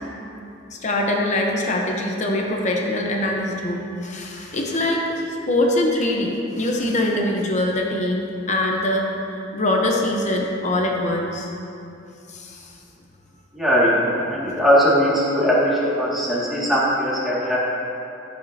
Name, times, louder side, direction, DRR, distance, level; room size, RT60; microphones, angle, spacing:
voice 1, 0.7-5.1 5.5-9.1 9.5-11.5 12.3-12.7, left 1 dB, 40° left, 0 dB, 0.8 m, -23 dB
voice 2, 13.5-13.9 14.2-15.5 15.8-17.6, equal, ahead, -9 dB, 2.0 m, -19 dB
12.0 x 8.3 x 2.8 m, 2.7 s
head